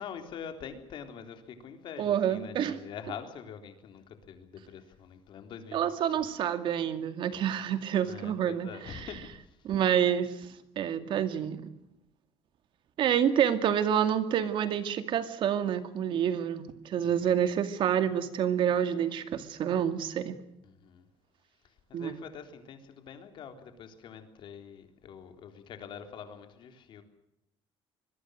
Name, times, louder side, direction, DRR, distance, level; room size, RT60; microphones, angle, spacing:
voice 1, 0.0-6.3 8.0-9.6 17.0-17.5 20.6-21.1 21.6-27.0, left 7 dB, 50° left, 7 dB, 3.7 m, -45 dB
voice 2, 2.0-2.8 5.7-9.0 9.6-10.3 10.8-11.7 13.0-20.4 21.9-22.1, right 9 dB, 50° right, 10 dB, 2.3 m, -28 dB
25.0 x 22.0 x 6.5 m, 0.83 s
cardioid pair, 175°, 10 cm